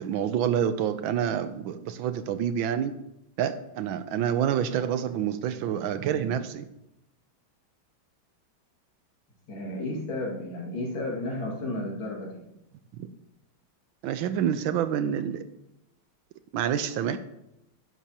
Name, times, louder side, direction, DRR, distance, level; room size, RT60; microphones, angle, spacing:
voice 1, 0.0-2.9 3.4-6.7 13.0-13.1 14.0-15.4 16.5-17.2, right 9 dB, 75° right, 11 dB, 1.4 m, -27 dB
voice 2, 9.5-12.4, left 1 dB, 70° left, -2 dB, 3.0 m, -32 dB
11.0 x 11.0 x 2.9 m, 0.87 s
omnidirectional pair, 2.3 m